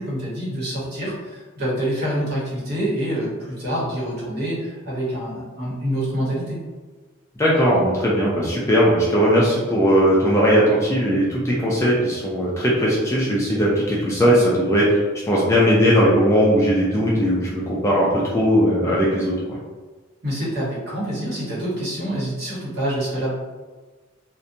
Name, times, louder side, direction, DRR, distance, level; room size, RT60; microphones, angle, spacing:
voice 1, 0.0-6.6 20.2-23.3, right 1 dB, 50° right, -7 dB, 1.0 m, -26 dB
voice 2, 7.4-19.4, equal, 15° left, -5 dB, 0.3 m, -18 dB
2.6 x 2.1 x 2.6 m, 1.3 s
head